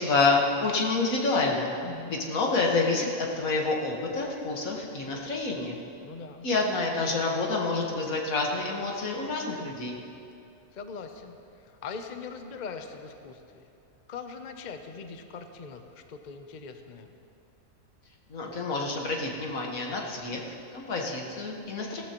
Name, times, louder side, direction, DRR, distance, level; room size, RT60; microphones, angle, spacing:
voice 1, 0.0-1.7 2.1-5.8 6.4-10.0 18.3-22.0, left 3 dB, 80° left, 0 dB, 1.8 m, -28 dB
voice 2, 1.8-2.3 6.0-6.5 10.7-13.6 14.1-17.1, left 5 dB, 45° left, 6 dB, 0.6 m, -41 dB
16.5 x 14.0 x 3.0 m, 2.6 s
omnidirectional pair, 1.4 m